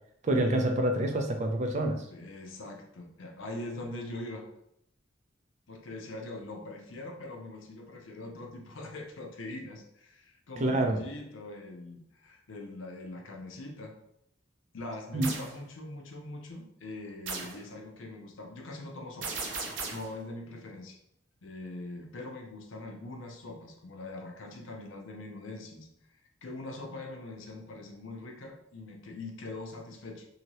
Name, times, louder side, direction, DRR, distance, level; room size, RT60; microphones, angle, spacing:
voice 1, 0.2-2.1 10.6-11.0 15.1-15.3, right 1 dB, 35° right, 4 dB, 0.4 m, -27 dB
voice 2, 2.1-4.5 5.7-13.9 14.7-21.0 21.4-25.9 26.4-30.3, left 2 dB, 85° left, 2 dB, 0.6 m, -42 dB
sound 1, 15.2-15.5 17.3-17.6 19.2-20.1, right 4 dB, 75° right, 0.6 m, -36 dB
2.8 x 2.7 x 2.9 m, 0.76 s
head